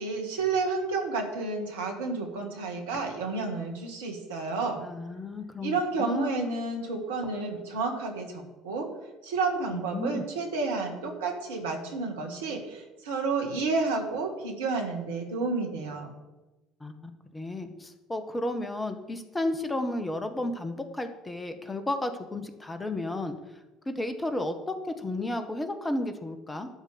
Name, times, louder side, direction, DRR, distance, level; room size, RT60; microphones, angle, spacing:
voice 1, 0.0-4.9 5.6-8.9 9.2-16.2, right 4 dB, 75° right, 2 dB, 1.8 m, -31 dB
voice 2, 4.8-6.3 9.7-10.2 16.8-23.4 23.8-26.7, left 1 dB, 15° left, 8 dB, 1.5 m, -33 dB
12.0 x 5.2 x 7.9 m, 1.1 s
figure-of-eight pair, 60°, 0 cm